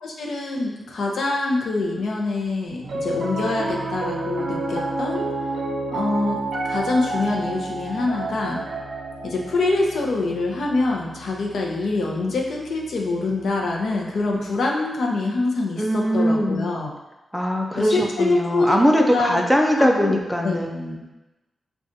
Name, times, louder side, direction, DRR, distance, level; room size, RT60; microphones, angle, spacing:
voice 1, 0.0-5.2 5.9-8.6 9.2-16.9 17.7-19.4 19.7-20.7, left 3 dB, 85° left, -1 dB, 0.6 m, -25 dB
Piano, 2.8-13.2, right 2 dB, 90° right, 0.5 m, -30 dB
voice 2, 15.8-16.8 17.3-21.0, equal, ahead, 1 dB, 0.4 m, -21 dB
5.0 x 2.3 x 2.6 m, 1.0 s
wide cardioid pair, 175°, 0 cm